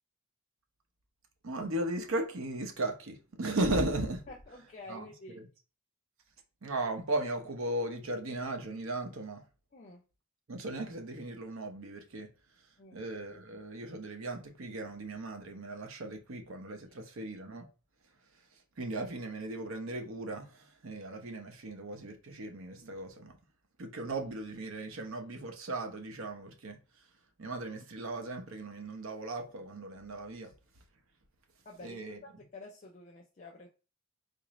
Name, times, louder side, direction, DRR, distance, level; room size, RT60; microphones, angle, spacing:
voice 1, 1.4-4.2 4.9-5.1 5.3-5.5 6.6-9.4 10.5-12.3 12.9-17.7 18.8-23.4 23.8-26.8 27.4-30.5 31.8-32.2, right 2 dB, 70° right, 0.7 m, -37 dB
voice 2, 4.3-5.4 9.7-10.0 12.8-13.0 16.9-17.0 30.4-30.5 31.6-33.7, left 2 dB, 35° left, 0.4 m, -50 dB
3.8 x 2.5 x 3.0 m
head